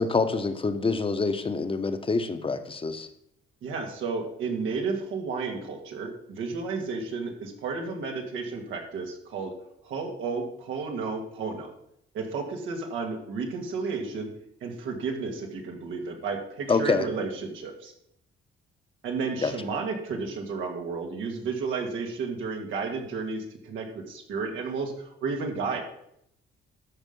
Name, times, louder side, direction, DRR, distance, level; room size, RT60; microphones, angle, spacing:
voice 1, 0.0-3.1 16.7-17.1 19.4-19.5, left 4 dB, 25° left, 9 dB, 1.1 m, -26 dB
voice 2, 3.6-9.5 9.8-11.7 12.1-14.3 14.6-17.9 19.0-25.8, right 4 dB, 85° right, 2 dB, 2.1 m, -32 dB
13.0 x 5.3 x 5.4 m, 0.75 s
cardioid pair, 90°, 20 cm